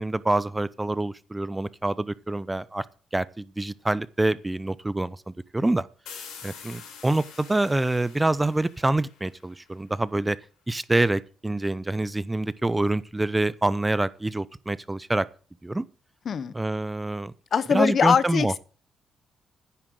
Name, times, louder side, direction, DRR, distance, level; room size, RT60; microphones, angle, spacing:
voice 1, 0.0-2.8 3.1-5.9 6.1-10.4 10.7-15.3 15.6-15.8 16.5-17.3 17.7-18.5, right 2 dB, 15° right, 0.6 m, -26 dB
sound 1, 6.1-9.7, left 6 dB, 85° left, 4.3 m, -45 dB
voice 2, 17.5-18.6, left 6 dB, 50° left, 0.8 m, -22 dB
10.0 x 7.4 x 7.8 m
cardioid pair, 90°, 0 cm